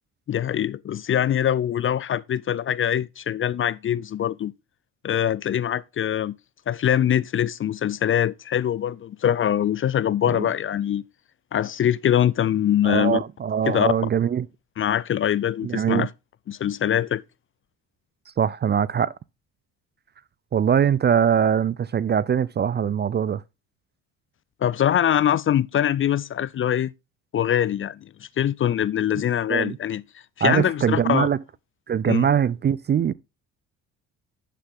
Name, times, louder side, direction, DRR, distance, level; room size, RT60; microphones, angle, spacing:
voice 1, 0.3-4.5 5.0-6.3 6.7-11.0 11.5-13.2 13.7-13.9 14.8-16.1 16.5-17.2 24.6-26.9 27.3-28.0 28.4-30.0 30.4-31.3 32.1-32.3, left 10 dB, 35° left, 0.4 m, -23 dB
voice 2, 12.8-14.5 15.6-16.1 18.4-19.1 20.5-23.4 29.5-29.8 30.4-31.4 31.9-33.1, right 8 dB, 30° right, 0.4 m, -22 dB
11.0 x 6.8 x 3.6 m
hypercardioid pair, 60°, 37 cm